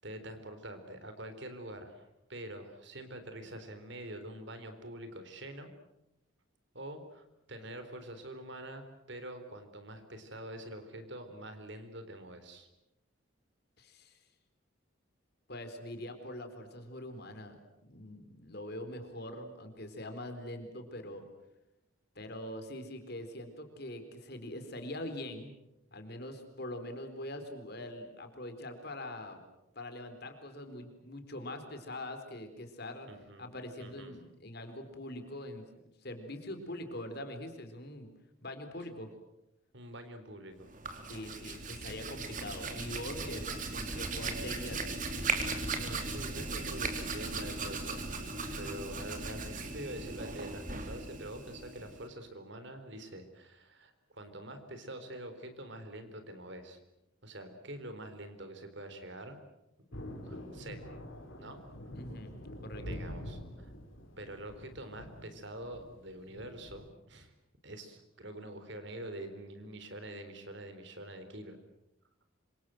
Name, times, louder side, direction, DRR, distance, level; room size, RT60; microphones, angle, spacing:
voice 1, 0.0-5.7 6.7-12.7 33.1-33.4 33.8-34.2 39.7-40.7 45.8-48.1 48.6-56.8 57.2-59.4 60.2-60.9 61.4-61.6 62.7-63.7 64.2-67.3 67.6-71.6, right 1 dB, 55° right, 8 dB, 3.9 m, -45 dB
voice 2, 13.8-14.2 15.5-17.6 17.9-21.2 22.2-25.5 25.9-29.4 29.8-33.1 33.4-35.6 36.0-38.1 38.4-39.1 41.1-43.4 43.7-44.9 61.9-62.3 62.6-62.8, left 1 dB, 50° left, 7 dB, 4.1 m, -43 dB
Hands, 40.7-52.1, right 3 dB, 40° right, 3.3 m, -37 dB
Thunder, 59.9-66.9, left 1 dB, 65° left, 4.1 m, -46 dB
27.0 x 25.5 x 7.8 m, 0.89 s
head